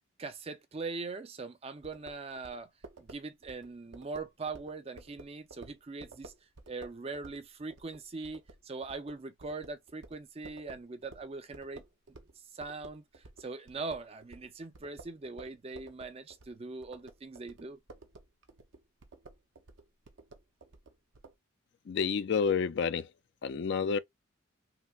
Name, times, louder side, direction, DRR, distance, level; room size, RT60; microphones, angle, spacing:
voice 1, 0.2-2.7 3.0-6.3 6.7-11.8 12.5-17.8, right 3 dB, 30° right, 0.4 m, -41 dB
sound 1, 1.8-12.4 12.6-21.4, right 3 dB, 65° right, 0.7 m, -53 dB
voice 2, 21.9-23.1 23.4-24.0, left 6 dB, 55° left, 0.3 m, -29 dB
5.6 x 2.1 x 2.3 m
head